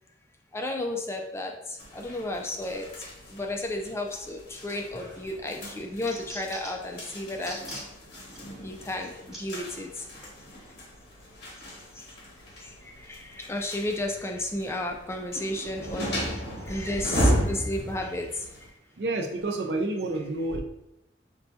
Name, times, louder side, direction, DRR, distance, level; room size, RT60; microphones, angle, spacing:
voice 1, 0.5-7.6 8.6-10.1 11.9-12.1 12.6-18.7, left 1 dB, 15° left, 2 dB, 0.3 m, -33 dB
sound 1, 1.8-18.7, equal, 70° left, 0.9 m, -35 dB
sound 2, 4.8-5.2 5.6-6.9 7.4-7.9 8.4-8.5 9.3-9.4 10.2-10.4, right 1 dB, 5° right, 0.8 m, -41 dB
voice 2, 19.0-20.6, right 2 dB, 65° right, 3 dB, 0.5 m, -29 dB
5.3 x 2.2 x 2.7 m, 0.85 s
head